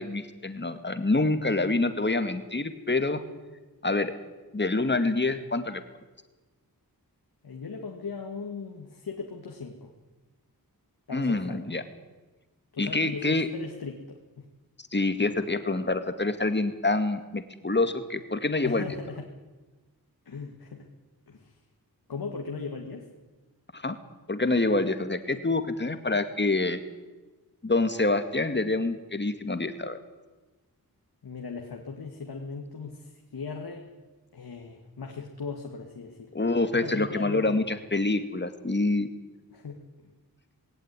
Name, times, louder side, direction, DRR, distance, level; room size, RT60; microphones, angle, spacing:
voice 1, 0.0-3.2 3.8-4.1 4.5-5.8 11.1-11.8 12.8-13.5 14.9-18.9 23.7-24.0 24.3-26.8 27.6-30.0 36.3-39.1, left 2 dB, 30° left, 9 dB, 2.2 m, -26 dB
voice 2, 7.4-9.9 11.1-11.6 12.7-14.5 18.6-19.3 20.3-20.9 21.3-21.5 22.1-23.1 31.2-33.9 34.3-36.3 36.7-37.6 39.5-40.1, left 4 dB, 80° left, 2 dB, 2.4 m, -38 dB
20.0 x 18.0 x 9.8 m, 1.2 s
wide cardioid pair, 85°, 37 cm